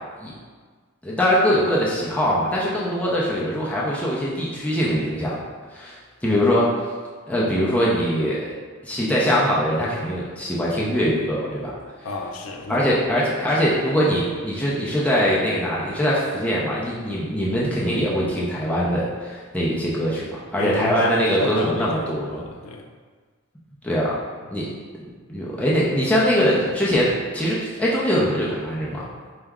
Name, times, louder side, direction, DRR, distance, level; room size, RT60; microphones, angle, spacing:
voice 1, 1.0-5.4 5.7-6.0 6.2-6.7 7.3-8.5 8.8-11.7 12.7-20.3 20.5-22.4 23.8-24.1 24.5-24.7 25.0-29.0, equal, 5° left, -7 dB, 0.4 m, -22 dB
voice 2, 12.0-12.9 20.6-22.9, left 2 dB, 80° left, 2 dB, 0.4 m, -32 dB
4.5 x 2.0 x 3.5 m, 1.5 s
head